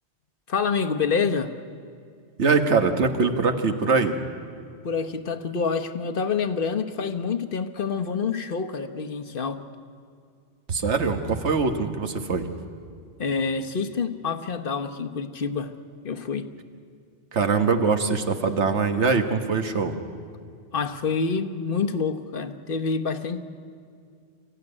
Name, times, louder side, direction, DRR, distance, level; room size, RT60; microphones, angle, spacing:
voice 1, 0.5-1.5 4.8-9.6 13.2-15.7 16.0-16.5 20.7-23.4, left 5 dB, 55° left, 8 dB, 1.2 m, -27 dB
voice 2, 2.4-4.2 10.7-12.5 17.3-19.9, right 4 dB, 85° right, 6 dB, 1.7 m, -22 dB
26.5 x 14.5 x 9.8 m, 2.3 s
omnidirectional pair, 1.1 m